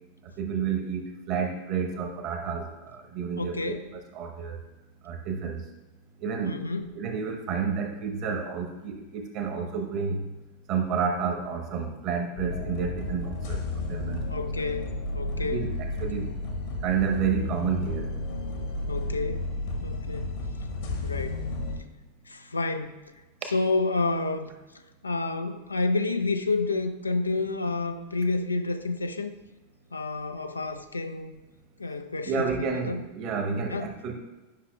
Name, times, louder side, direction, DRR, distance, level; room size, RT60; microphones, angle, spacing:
voice 1, 0.4-3.7 4.1-4.6 5.0-5.7 6.2-6.5 6.9-10.3 10.7-14.4 15.4-16.4 16.8-18.1 32.2-34.1, right 6 dB, 40° right, 3 dB, 1.1 m, -30 dB
voice 2, 3.4-3.9 6.4-6.9 14.3-15.7 16.1-16.2 18.9-19.5 19.8-20.3 21.0-21.4 22.3-23.0 23.4-24.5 25.0-29.3 29.9-31.4 31.8-33.0 33.7-33.9, left 3 dB, 80° left, 8 dB, 0.4 m, -29 dB
sound 1, 12.4-21.8, left 2 dB, 55° left, 1.1 m, -32 dB
10.5 x 5.7 x 2.4 m, 1.1 s
figure-of-eight pair, 90°, 0 cm